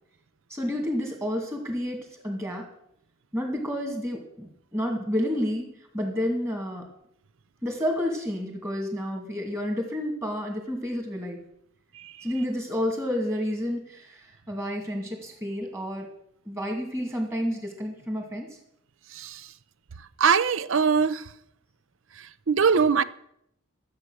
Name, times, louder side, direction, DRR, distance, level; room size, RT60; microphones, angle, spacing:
voice 1, 0.5-2.7 3.3-5.7 5.9-6.9 7.6-11.4 12.2-16.1 16.5-18.6, equal, 15° right, 2.4 m, -30 dB
voice 2, 20.2-21.2 22.5-23.0, right 6 dB, 65° right, 0.6 m, -21 dB
13.0 x 8.0 x 6.4 m
head